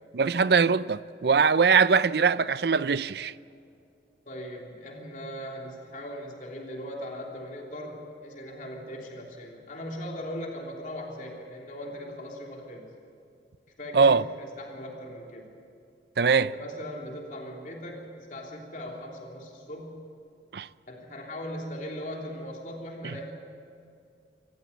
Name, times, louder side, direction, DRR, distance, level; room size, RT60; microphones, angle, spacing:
voice 1, 0.1-3.3 13.9-14.2 16.2-16.5 20.5-20.7 23.0-23.1, right 5 dB, 65° right, 0.5 m, -22 dB
voice 2, 4.3-12.9 13.8-15.5 16.4-20.0 20.9-23.3, equal, 45° left, 3.3 m, -39 dB
26.5 x 14.5 x 8.5 m
head